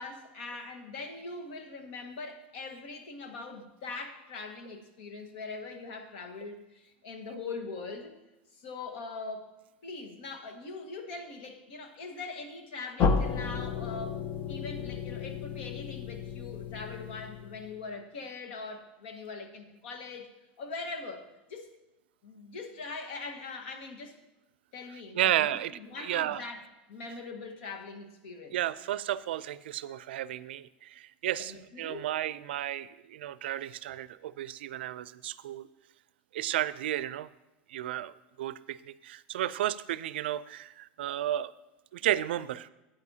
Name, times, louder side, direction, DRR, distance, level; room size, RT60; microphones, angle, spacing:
voice 1, 0.0-8.2 8.5-9.5 9.8-14.2 14.5-21.7 22.2-24.2 24.7-26.6 26.9-28.6 31.4-32.1, left 3 dB, 70° left, 5 dB, 1.5 m, -42 dB
sound 1, 13.0-17.8, left 5 dB, 30° left, 0.6 m, -32 dB
voice 2, 25.2-25.7 26.0-26.4 28.5-31.5 31.8-35.7 36.3-37.3 37.7-41.5 41.9-42.7, right 12 dB, 90° right, 17 dB, 0.4 m, -32 dB
12.0 x 8.9 x 2.7 m, 1.0 s
supercardioid pair, 135°, 6 cm